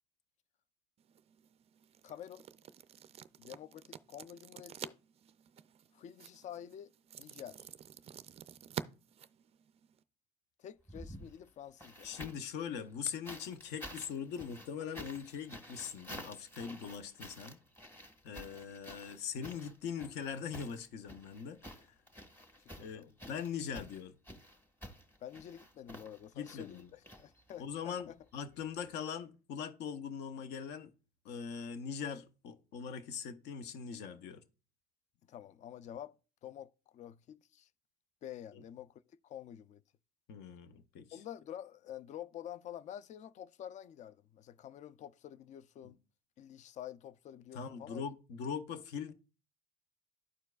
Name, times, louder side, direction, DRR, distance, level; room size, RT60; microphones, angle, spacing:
sound 1, 1.0-10.0, right 9 dB, 35° right, 0.4 m, -49 dB
voice 1, 2.0-2.4 3.4-5.0 5.9-6.9 7.2-7.7 10.6-12.1 22.8-23.1 25.2-28.2 35.3-37.7 38.2-39.8 41.1-46.0 46.4-48.0, left 10 dB, 40° left, 0.4 m, -48 dB
sound 2, 10.8-12.5 13.2-27.8 28.9-29.0, equal, 10° left, 1.7 m, -51 dB
voice 2, 12.0-17.6 18.2-21.6 22.8-24.2 26.4-26.9 27.6-30.9 31.2-34.4 38.5-38.6 40.3-41.2 45.8-45.9 47.5-49.1, left 7 dB, 65° left, 0.8 m, -41 dB
12.0 x 4.5 x 2.3 m
supercardioid pair, 100°, 19 cm